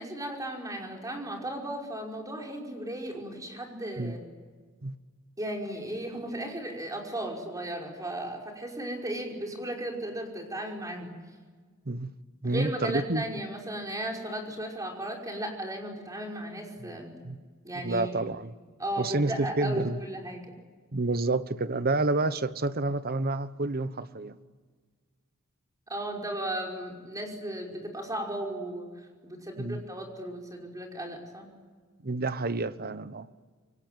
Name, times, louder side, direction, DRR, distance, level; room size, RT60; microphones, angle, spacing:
voice 1, 0.0-4.2 5.4-11.1 12.4-17.2 17.6-18.2 18.8-20.5 25.9-28.9 29.2-31.5, right 1 dB, 15° right, 5.4 m, -35 dB
voice 2, 12.4-13.2 17.2-17.4 17.7-18.5 19.0-20.0 20.9-24.4 29.6-29.8 32.0-33.3, right 2 dB, 45° right, 1.0 m, -29 dB
26.5 x 24.5 x 9.2 m
head